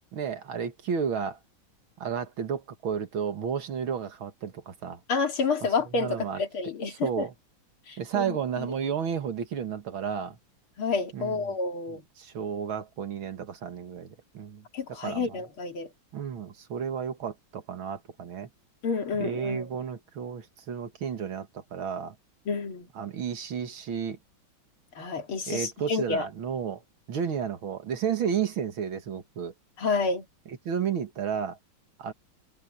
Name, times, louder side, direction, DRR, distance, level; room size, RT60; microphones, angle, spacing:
voice 1, 0.1-1.4 2.0-5.0 5.9-6.4 6.9-7.3 8.0-10.4 11.1-11.6 12.2-15.4 16.1-18.5 19.1-22.2 23.0-24.2 25.5-26.8 27.1-29.5 30.5-31.6 32.0-32.1, right 7 dB, 75° right, 2.5 m, -32 dB
voice 2, 5.1-7.3 7.9-8.7 10.8-12.0 14.7-15.9 18.8-19.7 22.5-22.9 25.0-26.3 29.8-30.3, left 4 dB, 90° left, 3.5 m, -29 dB
omnidirectional pair, 2.3 m